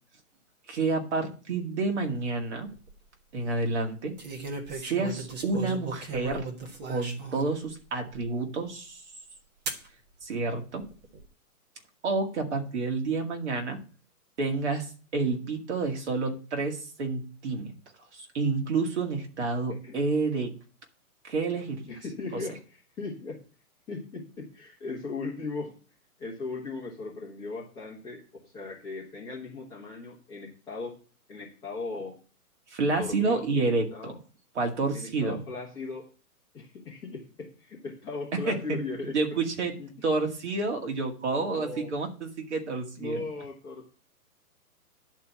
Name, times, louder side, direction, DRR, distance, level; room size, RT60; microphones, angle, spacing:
voice 1, 0.7-2.7 3.3-4.2 4.7-6.5 6.9-9.0 10.2-10.9 12.0-13.8 14.4-17.7 18.1-20.5 21.2-21.8 32.7-34.1 34.6-35.4 38.5-38.8 39.1-39.7 40.0-43.2, right 3 dB, 50° right, 2 dB, 2.2 m, -29 dB
sound 1, 2.5-2.9 4.2-7.5 8.1-8.2 9.7-9.9 10.8-11.2, right 4 dB, 30° right, 1.5 m, -37 dB
voice 2, 21.8-23.4 23.9-25.8 26.2-31.0 31.3-32.2 32.9-34.2 34.9-36.1 36.5-39.4 39.8-39.9 41.4-41.9 43.0-43.9, left 3 dB, 10° left, -4 dB, 1.3 m, -38 dB
10.5 x 4.5 x 6.9 m, 0.39 s
hypercardioid pair, 170°, 45 cm